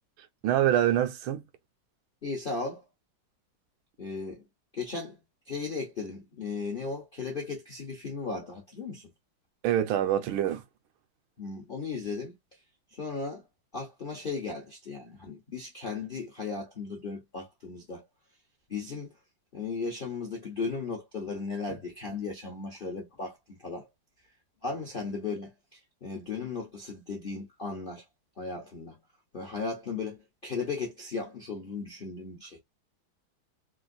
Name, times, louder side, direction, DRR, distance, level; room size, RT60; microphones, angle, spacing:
voice 1, 0.4-1.4 9.6-10.6, right 11 dB, 80° right, 1.5 m, -25 dB
voice 2, 2.2-2.8 4.0-4.5 4.7-5.2 5.5-9.1 11.4-12.4 12.9-13.4 13.7-18.0 18.7-19.1 19.5-23.9 24.6-28.0 28.4-29.0 29.3-30.2 30.4-32.6, left 4 dB, 55° left, 0.6 m, -36 dB
3.7 x 2.5 x 2.5 m
omnidirectional pair, 2.3 m